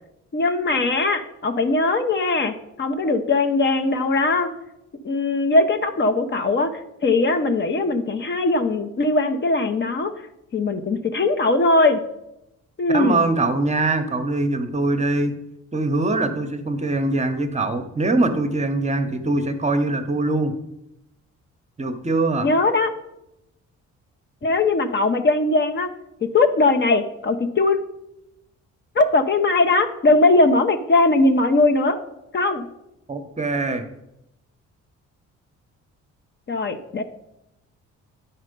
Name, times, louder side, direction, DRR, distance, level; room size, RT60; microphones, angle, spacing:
voice 1, 0.3-4.5 5.0-10.1 10.5-12.0 12.8-13.2 22.4-22.9 24.4-25.9 26.2-27.8 28.9-32.0 32.3-32.7 36.5-37.0, left 2 dB, 35° left, 7 dB, 0.7 m, -20 dB
voice 2, 12.9-15.3 15.7-20.5 21.8-22.5 33.1-33.8, right 2 dB, 25° right, 7 dB, 0.9 m, -22 dB
9.5 x 4.4 x 5.2 m, 0.87 s
cardioid pair, 90°, 30 cm